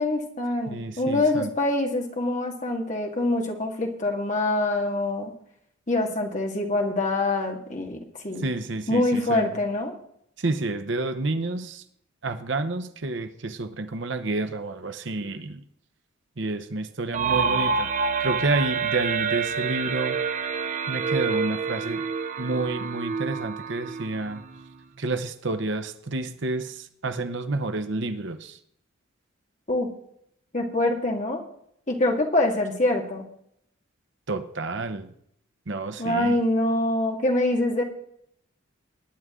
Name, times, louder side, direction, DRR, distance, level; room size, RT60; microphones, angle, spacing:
voice 1, 0.0-5.3 5.9-8.5 8.9-9.9 29.7-29.9 30.5-31.4 31.9-33.3 36.0-37.8, left 2 dB, 35° left, 2 dB, 1.9 m, -25 dB
voice 2, 0.7-1.5 8.4-9.5 10.4-11.8 12.2-15.6 16.4-17.9 18.2-20.2 20.9-22.0 22.4-24.4 25.0-28.6 34.3-35.1 35.7-36.4, right 2 dB, 55° right, 10 dB, 0.9 m, -29 dB
sound 1, 17.1-24.8, right 5 dB, 35° right, 0.6 m, -28 dB
20.0 x 9.6 x 3.7 m, 0.71 s
head